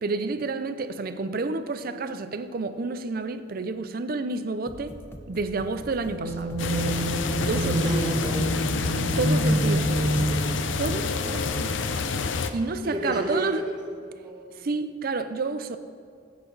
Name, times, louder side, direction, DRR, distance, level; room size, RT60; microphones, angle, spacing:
voice 1, 0.0-4.9 5.3-6.6 7.5-7.8 9.2-10.5 10.8-11.9 12.5-13.6 14.6-15.8, right 3 dB, 50° right, 0.5 m, -30 dB
sound 1, 4.6-10.3, equal, 10° left, 0.7 m, -41 dB
sound 2, 6.0-12.0, right 1 dB, 75° right, 1.3 m, -28 dB
sound 3, 6.6-12.5, left 4 dB, 80° left, 0.6 m, -28 dB
voice 2, 7.2-8.7 12.8-13.8 14.1-14.7, right 1 dB, 25° right, 1.4 m, -30 dB
15.5 x 8.0 x 4.0 m
head